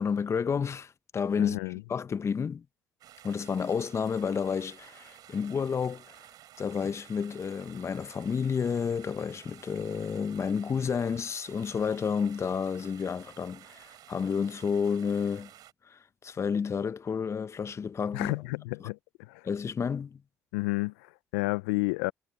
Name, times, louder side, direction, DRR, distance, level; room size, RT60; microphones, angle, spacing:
voice 1, 0.0-2.6 3.2-6.2 6.6-15.5 15.9-18.3 18.8-18.9 19.4-20.2, left 6 dB, 40° left, 1.0 m, -31 dB
voice 2, 1.4-1.8 18.1-19.0 19.3-19.4 20.5-22.1, left 25 dB, 85° left, 0.4 m, -31 dB
sound 1, 3.0-15.7, right 13 dB, 70° right, 7.5 m, -53 dB
hypercardioid pair, 50°, 7 cm